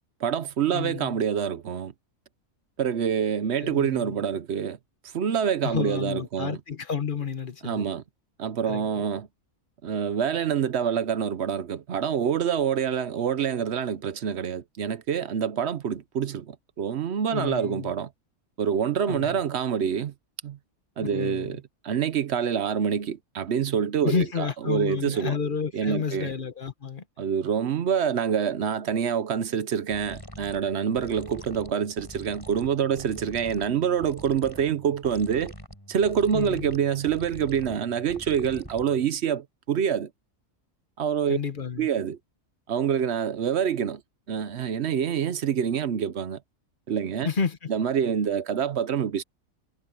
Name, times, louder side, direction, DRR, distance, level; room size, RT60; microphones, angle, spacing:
voice 1, 0.2-1.9 2.8-4.8 5.1-6.6 7.6-8.0 8.4-9.3 9.8-18.1 18.6-20.1 20.4-20.6 21.0-25.4 25.7-26.3 27.2-35.5 35.9-40.1 41.0-41.4 41.8-42.2 42.7-44.0 44.3-46.4 46.9-47.3 47.7-49.2, right 8 dB, 55° right, 0.9 m, -26 dB
voice 2, 0.7-1.2 3.6-4.2 5.6-7.9 8.7-9.0 17.3-17.9 19.1-19.4 21.0-21.6 24.0-27.0 36.3-36.7 41.3-41.9 47.2-47.7, left 6 dB, 40° left, 1.3 m, -31 dB
sound 1, 29.9-39.2, equal, 15° left, 5.2 m, -45 dB
omnidirectional pair, 1.5 m